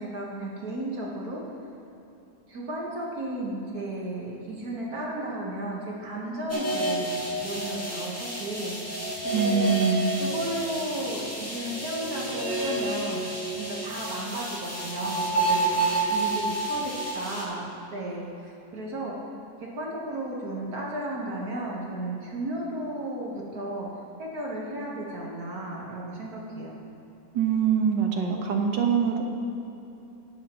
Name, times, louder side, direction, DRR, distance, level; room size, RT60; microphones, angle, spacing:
voice 1, 0.0-1.4 2.5-8.7 9.2-9.8 10.2-13.2 13.6-15.8 16.1-17.7 17.9-19.2 19.7-26.7, right 1 dB, 60° right, -4 dB, 1.7 m, -34 dB
sound 1, 6.5-17.4, right 2 dB, 10° left, 1.7 m, -29 dB
voice 2, 9.3-10.0 27.3-29.2, right 6 dB, 85° right, 2 dB, 1.8 m, -24 dB
21.0 x 7.0 x 3.0 m, 2.9 s
omnidirectional pair, 1.9 m